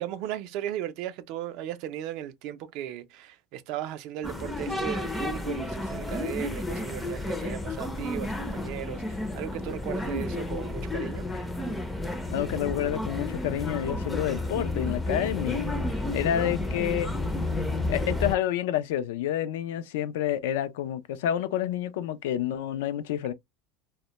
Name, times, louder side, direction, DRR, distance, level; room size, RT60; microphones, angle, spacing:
voice 1, 0.0-11.3, right 11 dB, 55° right, 0.4 m, -36 dB
sound 1, 4.2-18.3, left 2 dB, 10° left, 0.4 m, -31 dB
voice 2, 12.3-15.7 16.1-17.1 17.9-23.3, left 11 dB, 80° left, 0.3 m, -29 dB
2.1 x 2.1 x 2.8 m
supercardioid pair, 135°, 0 cm